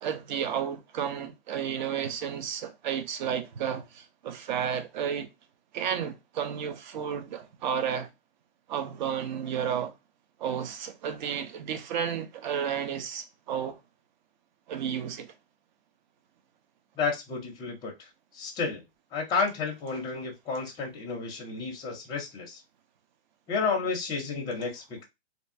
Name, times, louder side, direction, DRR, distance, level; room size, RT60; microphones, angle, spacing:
voice 1, 0.0-5.3 5.7-8.1 8.7-9.9 10.4-13.8 14.7-15.3, right 8 dB, 45° right, 0.6 m, -32 dB
voice 2, 17.0-17.9 18.3-18.8 19.1-22.6 23.5-25.0, left 4 dB, 15° left, 0.6 m, -31 dB
2.8 x 2.3 x 2.6 m
hypercardioid pair, 140°, 31 cm